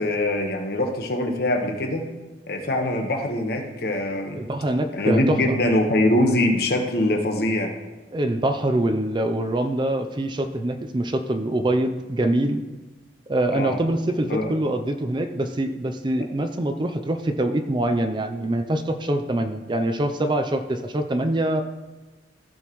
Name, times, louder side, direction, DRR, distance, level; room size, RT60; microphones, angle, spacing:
voice 1, 0.0-2.0 2.5-4.4 4.9-7.7 13.5-13.8 14.3-14.5, left 1 dB, 55° left, 3 dB, 1.2 m, -23 dB
voice 2, 4.3-5.6 8.1-12.6 13.3-21.6, right 1 dB, 25° right, 6 dB, 0.5 m, -24 dB
14.5 x 6.2 x 3.1 m, 1.2 s
head